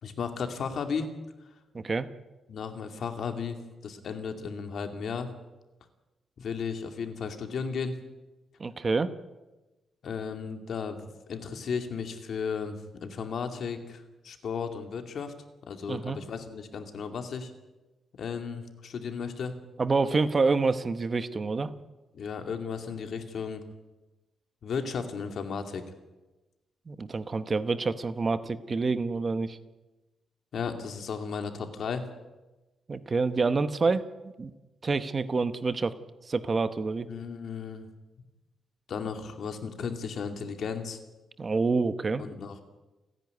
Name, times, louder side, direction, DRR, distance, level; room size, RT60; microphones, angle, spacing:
voice 1, 0.0-1.1 2.5-5.3 6.4-8.0 10.0-15.3 15.7-17.5 18.2-19.6 22.1-23.6 24.6-25.8 30.5-32.1 37.1-37.9 38.9-41.0 42.2-42.6, left 6 dB, 60° left, 6 dB, 2.4 m, -34 dB
voice 2, 1.7-2.1 8.6-9.1 15.9-16.2 19.8-21.7 26.9-29.6 32.9-34.1 34.4-34.5 34.8-36.0 36.3-37.1 41.4-42.2, right 4 dB, 30° right, 12 dB, 0.9 m, -27 dB
29.5 x 10.5 x 9.7 m, 1.1 s
wide cardioid pair, 145°, 0 cm